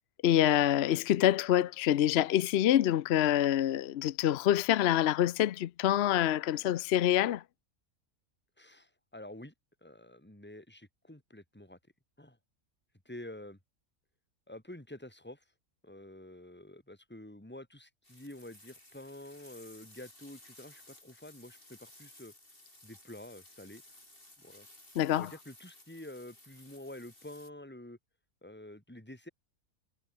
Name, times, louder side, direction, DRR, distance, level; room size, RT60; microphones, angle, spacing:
voice 1, 0.2-7.4 25.0-25.3, left 12 dB, 60° left, 0.7 m, -26 dB
voice 2, 8.6-9.5 9.8-11.8 12.2-12.4 13.1-13.6 14.5-15.4 15.8-22.3 22.8-23.8 24.4-24.7 25.2-28.0 28.4-29.3, left 1 dB, 5° left, 3.8 m, -48 dB
sound 1, 18.0-27.5, left 1 dB, 40° left, 7.1 m, -57 dB
omnidirectional pair, 1.5 m